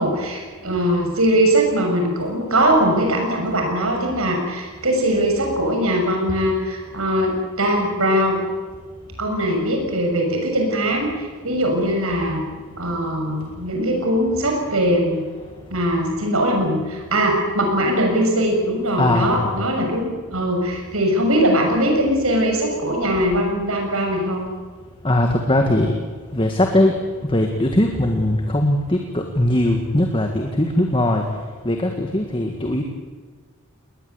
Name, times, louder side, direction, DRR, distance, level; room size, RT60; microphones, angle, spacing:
voice 1, 0.0-8.4 9.2-12.4 12.8-15.2 15.7-24.5, right 1 dB, 75° right, 2 dB, 6.7 m, -21 dB
voice 2, 19.0-19.6 25.0-25.9 26.3-27.0 27.3-31.3 31.7-32.8, left 1 dB, 25° left, 3 dB, 1.8 m, -20 dB
20.5 x 20.0 x 8.1 m, 1.5 s
head